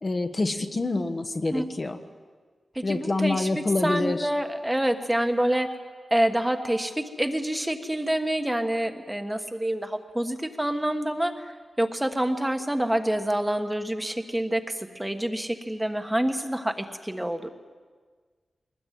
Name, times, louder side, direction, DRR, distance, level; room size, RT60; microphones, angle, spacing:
voice 1, 0.0-2.0 2.8-4.3, left 2 dB, 35° left, 6 dB, 1.2 m, -26 dB
voice 2, 2.7-5.7 6.1-11.5 11.8-14.6 14.9-17.5, right 1 dB, 10° right, 6 dB, 1.4 m, -27 dB
22.0 x 20.0 x 9.3 m, 1.5 s
wide cardioid pair, 130°, 0 cm